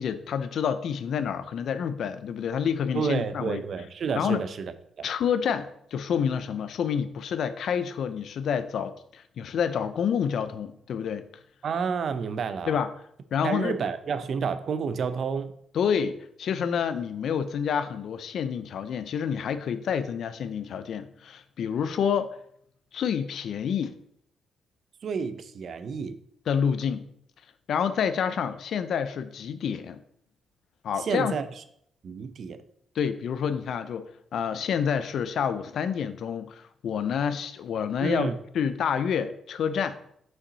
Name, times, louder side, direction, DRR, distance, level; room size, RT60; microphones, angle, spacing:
voice 1, 0.0-3.6 4.2-4.4 5.0-11.2 12.7-12.9 13.3-13.7 15.7-22.3 22.9-23.9 26.5-27.1 27.7-30.0 30.8-31.4 32.9-40.0, left 7 dB, 70° left, 12 dB, 0.5 m, -28 dB
voice 2, 2.9-4.7 5.0-5.1 11.6-12.8 13.4-15.5 25.0-26.2 31.0-31.4 32.0-32.6 38.0-38.4, right 6 dB, 55° right, 11 dB, 0.6 m, -30 dB
5.8 x 5.5 x 4.0 m, 0.69 s
cardioid pair, 105°, 0 cm